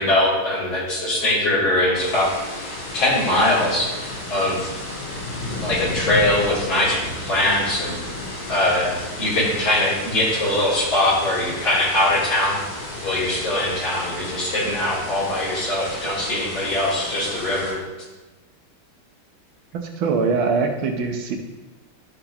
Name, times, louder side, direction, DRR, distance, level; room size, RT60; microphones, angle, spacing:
voice 1, 0.0-2.3 2.6-3.9 4.3-4.7 5.4-8.0 8.5-12.6 13.0-17.8, left 1 dB, 70° left, -8 dB, 4.1 m, -22 dB
sound 1, 2.0-17.7, left 1 dB, 90° left, 3.6 m, -33 dB
voice 2, 20.0-21.4, right 4 dB, 75° right, 3 dB, 1.7 m, -22 dB
12.5 x 5.9 x 2.9 m, 1.2 s
omnidirectional pair, 2.3 m